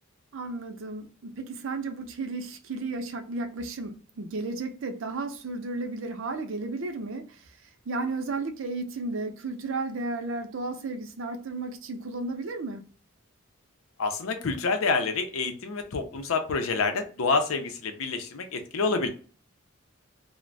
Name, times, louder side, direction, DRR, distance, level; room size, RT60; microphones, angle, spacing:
voice 1, 0.3-7.4 7.9-12.8, right 3 dB, 65° right, 0.5 m, -33 dB
voice 2, 14.0-19.1, left 4 dB, 85° left, 0.6 m, -27 dB
2.4 x 2.1 x 3.2 m
head